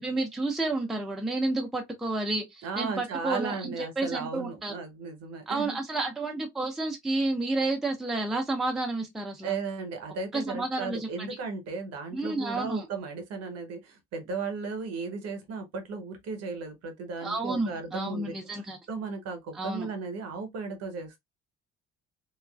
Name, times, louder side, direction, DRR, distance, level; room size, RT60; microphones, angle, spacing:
voice 1, 0.0-4.7 5.5-9.6 10.3-11.4 12.1-12.9 17.2-18.8 19.5-19.9, right 2 dB, ahead, 0.5 m, -31 dB
voice 2, 2.6-5.8 9.4-18.6 18.9-21.2, right 4 dB, 45° right, 0.9 m, -35 dB
3.0 x 2.3 x 2.3 m
figure-of-eight pair, 50°, 35 cm